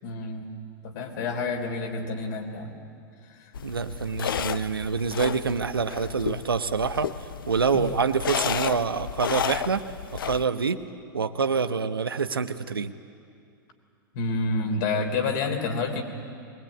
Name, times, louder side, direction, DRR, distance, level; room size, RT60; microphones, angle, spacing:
voice 1, 0.0-0.5 0.8-2.7 3.4-3.5 7.7-7.9 14.1-16.0, left 3 dB, 55° left, 4 dB, 3.4 m, -28 dB
sound 1, 3.5-10.4, left 8 dB, 70° left, 0.7 m, -32 dB
voice 2, 3.6-7.1 7.5-9.8 10.2-10.8 11.1-12.9, right 5 dB, 85° right, 10 dB, 1.0 m, -26 dB
22.0 x 20.0 x 8.8 m, 2.4 s
figure-of-eight pair, 100°, 12 cm